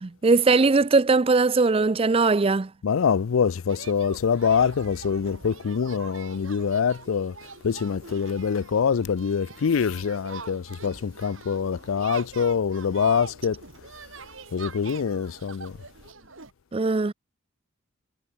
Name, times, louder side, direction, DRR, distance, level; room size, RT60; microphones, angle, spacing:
voice 1, 0.0-2.7 16.7-17.1, right 3 dB, 25° right, 0.4 m, -20 dB
voice 2, 2.8-13.6 14.5-15.8, left 6 dB, 75° left, 0.4 m, -25 dB
sound 1, 3.7-16.5, right 4 dB, 70° right, 2.5 m, -44 dB
head